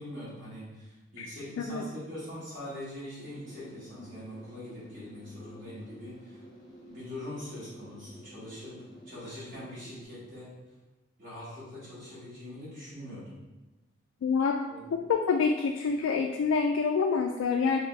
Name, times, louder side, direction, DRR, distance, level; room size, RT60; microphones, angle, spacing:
voice 1, 0.0-6.4 6.9-8.7 9.0-10.5 11.2-13.4 14.7-14.9, left 1 dB, 50° right, -11 dB, 1.4 m, -43 dB
sound 1, 3.2-10.0, equal, 20° left, 0.7 m, -50 dB
voice 2, 14.2-14.6 14.9-17.8, left 5 dB, 90° left, 3 dB, 0.3 m, -27 dB
3.5 x 3.3 x 3.2 m, 1.2 s
head